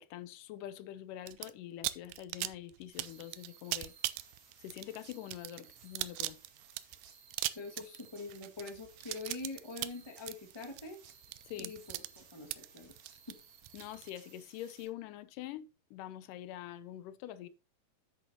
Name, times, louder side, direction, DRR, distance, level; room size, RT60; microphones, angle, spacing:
voice 1, 0.0-3.9 4.6-6.4 11.5-11.8 13.7-17.5, left 12 dB, 85° left, 2.3 m, -45 dB
sound 1, 1.3-1.5 1.8-14.1, right 17 dB, 85° right, 2.1 m, -39 dB
sound 2, 2.9-14.9, right 6 dB, 55° right, 2.1 m, -59 dB
voice 2, 7.5-11.0 11.6-12.9 13.3-13.4, left 3 dB, 35° left, 0.4 m, -44 dB
8.5 x 8.3 x 2.8 m
omnidirectional pair, 3.7 m